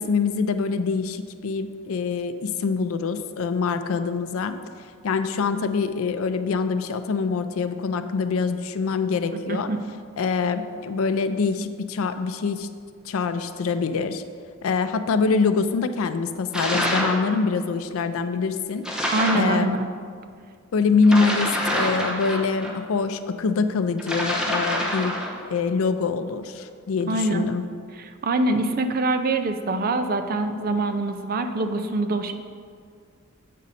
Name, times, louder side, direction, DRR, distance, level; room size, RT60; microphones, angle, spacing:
voice 1, 0.0-4.6 5.0-9.7 10.2-12.7 13.1-14.2 14.6-18.8 19.3-19.7 20.7-25.2 25.5-27.6, left 4 dB, 80° left, 10 dB, 0.4 m, -24 dB
sound 1, 16.5-17.2 18.8-19.5 21.0-22.7 24.0-25.4, equal, 5° right, 0.9 m, -26 dB
voice 2, 19.1-19.9 27.1-27.5 28.2-32.3, right 2 dB, 45° right, 7 dB, 0.5 m, -24 dB
8.3 x 5.3 x 4.1 m, 2.1 s
head